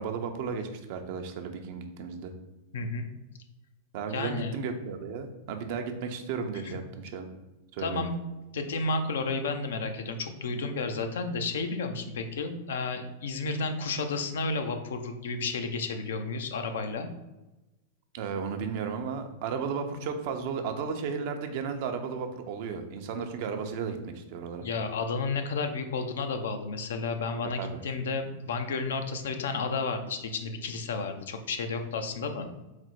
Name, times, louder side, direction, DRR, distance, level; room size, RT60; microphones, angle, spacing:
voice 1, 0.0-2.3 3.9-7.3 7.7-8.1 10.5-10.7 18.1-24.6 27.6-27.8, right 6 dB, 60° right, 6 dB, 0.5 m, -34 dB
voice 2, 2.7-3.1 4.1-4.6 6.6-6.8 7.8-8.1 8.5-17.1 24.6-32.6, left 4 dB, 80° left, 7 dB, 0.5 m, -32 dB
4.1 x 2.0 x 4.4 m, 1.0 s
hypercardioid pair, 110°, 0 cm